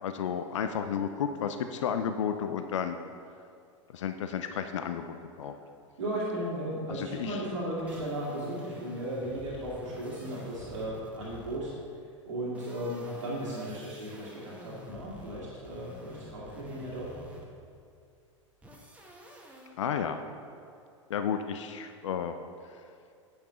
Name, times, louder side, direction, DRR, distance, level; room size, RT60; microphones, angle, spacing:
voice 1, 0.0-3.0 3.9-5.5 6.9-7.4 19.8-20.2 21.1-22.4, left 7 dB, 70° left, 8 dB, 0.5 m, -32 dB
voice 2, 6.0-11.7 12.2-17.4, right 1 dB, 75° right, -6 dB, 2.1 m, -36 dB
sound 1, 7.8-11.8 12.4-17.7 18.6-19.7, equal, 10° right, 1.3 m, -49 dB
10.0 x 7.9 x 3.1 m, 2.4 s
figure-of-eight pair, 90°, 16 cm